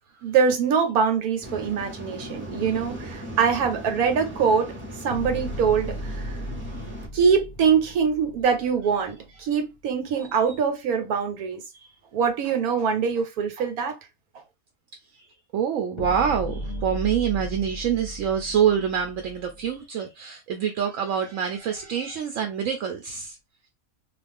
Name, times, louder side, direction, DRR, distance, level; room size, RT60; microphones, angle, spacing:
voice 1, 0.2-4.7 5.0-6.4 7.1-11.6 12.1-14.0, right 6 dB, 90° right, 1.3 m, -23 dB
Waves surf, 1.4-7.1, equal, 10° right, 0.6 m, -38 dB
sound 1, 5.1-9.4 16.0-19.7, equal, 40° left, 0.8 m, -36 dB
voice 2, 15.5-23.4, right 8 dB, 70° right, 0.9 m, -26 dB
2.5 x 2.3 x 3.4 m
omnidirectional pair, 1.5 m